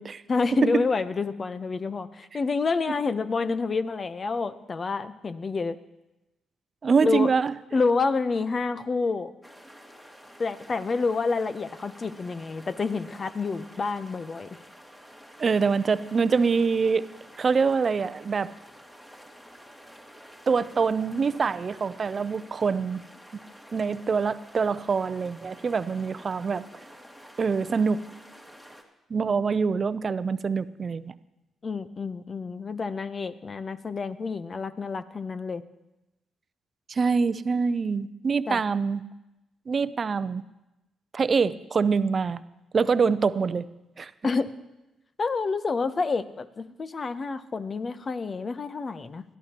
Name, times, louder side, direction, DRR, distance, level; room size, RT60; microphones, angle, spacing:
voice 1, 0.3-5.8 7.0-7.3 7.7-9.3 10.4-14.6 31.6-35.6 38.5-38.6 44.2-44.5 45.2-49.2, left 4 dB, 45° left, 13 dB, 0.8 m, -28 dB
voice 2, 6.8-7.5 15.4-17.0 17.4-18.5 20.5-23.0 23.7-26.7 27.4-28.0 29.1-31.1 36.9-39.0 39.7-40.4 41.1-42.4 42.7-43.7 44.0-44.1, right 5 dB, 45° right, 16 dB, 0.5 m, -25 dB
sound 1, 9.4-28.8, equal, 10° left, 2.3 m, -50 dB
21.0 x 13.0 x 3.0 m, 0.96 s
hypercardioid pair, 45°, 0 cm